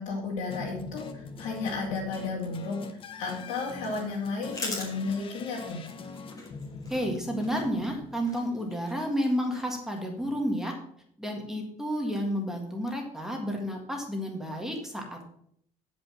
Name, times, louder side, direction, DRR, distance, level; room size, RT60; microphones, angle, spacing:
voice 1, 0.0-5.8, left 4 dB, 70° left, -6 dB, 2.7 m, -33 dB
sound 1, 0.5-8.7, left 4 dB, 40° left, 1.1 m, -43 dB
sound 2, 3.1-10.0, left 2 dB, 25° left, 3.3 m, -44 dB
voice 2, 6.9-10.8 11.2-15.2, equal, 5° right, 1 dB, 1.8 m, -31 dB
10.0 x 5.3 x 6.2 m, 0.68 s
cardioid pair, 130°, 14 cm